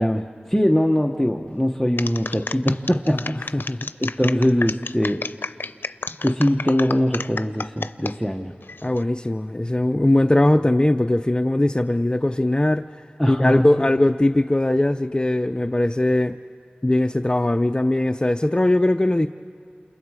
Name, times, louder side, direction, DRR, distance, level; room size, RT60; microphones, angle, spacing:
voice 1, 0.0-3.5 4.0-5.2 6.2-8.5 13.2-13.9, equal, 5° left, 2 dB, 0.9 m, -22 dB
sound 1, 2.0-8.1 8.6-9.0, left 3 dB, 90° left, 0.5 m, -31 dB
voice 2, 3.1-3.9 8.8-13.0 13.3-16.4 16.8-19.3, left 1 dB, 25° left, 8 dB, 0.5 m, -20 dB
29.5 x 27.5 x 4.8 m, 2.6 s
wide cardioid pair, 50°, 4 cm